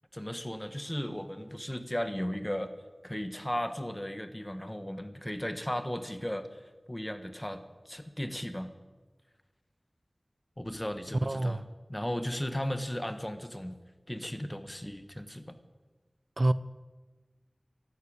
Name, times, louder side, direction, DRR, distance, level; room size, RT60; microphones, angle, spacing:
voice 1, 0.1-2.7 3.0-8.7 10.6-11.6 11.9-13.7 14.1-15.6, equal, 15° left, 1.4 m, -36 dB
voice 2, 11.2-11.6 16.4-16.5, right 2 dB, 55° right, 0.5 m, -26 dB
13.5 x 11.5 x 8.8 m
wide cardioid pair, 50°, 0 cm